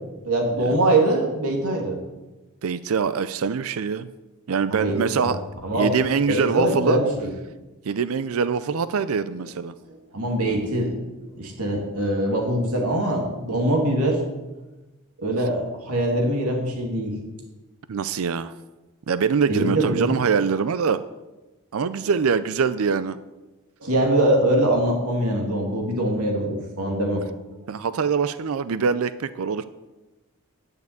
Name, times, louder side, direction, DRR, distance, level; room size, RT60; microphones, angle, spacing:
voice 1, 0.2-2.0 4.7-5.3 5.6-5.9 6.3-7.3 9.8-10.9 11.3-14.2 15.2-17.2 19.5-20.2 23.8-27.2, right 1 dB, 90° right, 0 dB, 2.7 m, -23 dB
voice 2, 2.6-4.1 4.5-5.4 5.7-7.0 7.8-9.7 17.9-18.5 19.1-21.0 21.7-23.2 27.7-29.6, right 6 dB, 70° right, 14 dB, 0.4 m, -24 dB
11.0 x 6.7 x 8.2 m, 1.1 s
head